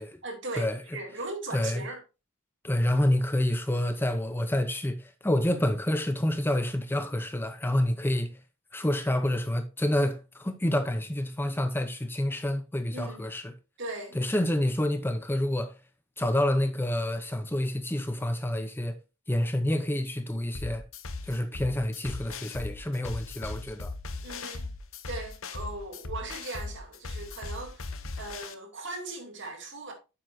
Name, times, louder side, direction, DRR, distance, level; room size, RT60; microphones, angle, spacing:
voice 1, 0.2-2.0 12.9-13.3 13.8-14.2 24.2-24.7 25.1-29.9, right 2 dB, 60° right, 2.6 m, -38 dB
voice 2, 1.5-1.8 2.6-8.4 8.7-13.5 14.1-15.8 16.2-19.0 19.3-20.8 21.2-23.9, left 1 dB, 10° left, 0.6 m, -28 dB
sound 1, 20.5-28.5, left 3 dB, 85° left, 1.0 m, -38 dB
9.8 x 7.6 x 2.7 m
head